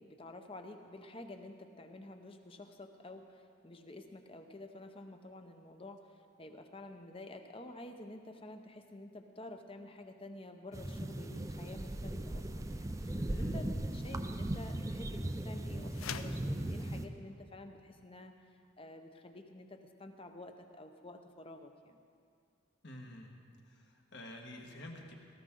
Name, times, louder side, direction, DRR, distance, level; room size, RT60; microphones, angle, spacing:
voice 1, 0.0-6.1 6.4-18.3 18.8-22.0, left 2 dB, 25° left, 6 dB, 0.8 m, -50 dB
sound 1, 10.7-17.1, right 1 dB, 15° right, 0.4 m, -38 dB
voice 2, 13.1-13.6 22.8-23.3 23.6-25.1, left 1 dB, 55° left, 1 dB, 1.6 m, -49 dB
sound 2, 15.9-16.5, left 8 dB, 80° left, 0.5 m, -42 dB
18.5 x 14.0 x 3.8 m, 2.3 s
head